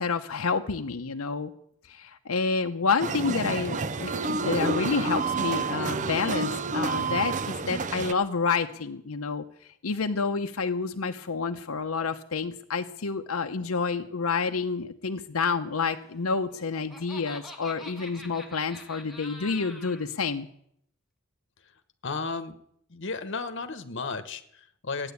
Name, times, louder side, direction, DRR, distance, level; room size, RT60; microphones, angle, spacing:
voice 1, 0.0-1.5 1.9-9.4 9.8-20.5, left 4 dB, 85° left, 5 dB, 0.8 m, -29 dB
sound 1, 3.0-8.1, right 4 dB, 35° right, 0.5 m, -29 dB
Laughter, 16.5-20.1, left 1 dB, ahead, 1.5 m, -45 dB
voice 2, 22.0-22.5 22.9-25.1, left 4 dB, 55° left, 9 dB, 1.1 m, -34 dB
14.0 x 9.8 x 8.3 m, 0.72 s
head